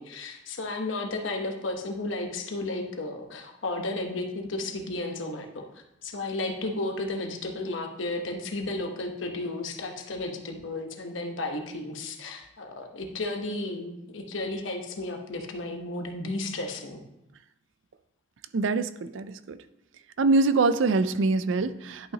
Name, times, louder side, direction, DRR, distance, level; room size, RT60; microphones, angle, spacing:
voice 1, 0.0-5.7 6.0-17.0, left 2 dB, 85° left, 4 dB, 1.1 m, -33 dB
voice 2, 18.5-19.6 20.2-22.1, right 3 dB, 75° right, 13 dB, 0.4 m, -24 dB
10.5 x 5.6 x 2.9 m, 0.87 s
head